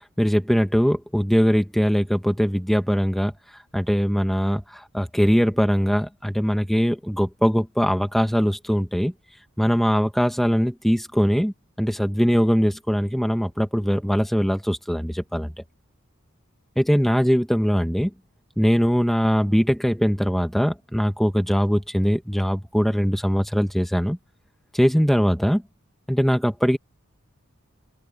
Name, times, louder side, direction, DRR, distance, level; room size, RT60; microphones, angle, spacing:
voice 1, 0.2-3.3 3.7-9.1 9.6-15.5 16.8-18.1 18.6-24.2 24.7-25.6 26.1-26.8, equal, ahead, 1.2 m, -21 dB
open air
head